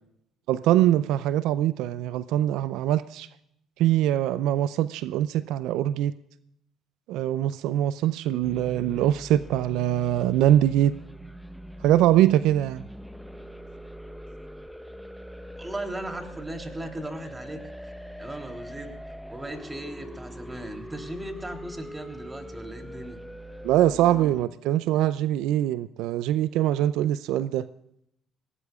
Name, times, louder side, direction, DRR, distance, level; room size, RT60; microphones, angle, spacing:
voice 1, 0.5-3.3 3.8-6.1 7.1-10.9 11.8-12.8 23.6-27.7, right 12 dB, 75° right, 15 dB, 0.4 m, -23 dB
sound 1, 8.4-24.5, equal, ahead, 0.8 m, -42 dB
voice 2, 15.6-17.9 18.2-18.9 19.3-23.2, right 1 dB, 15° right, 4 dB, 3.3 m, -37 dB
22.0 x 17.5 x 2.4 m, 0.76 s
supercardioid pair, 70°, 0 cm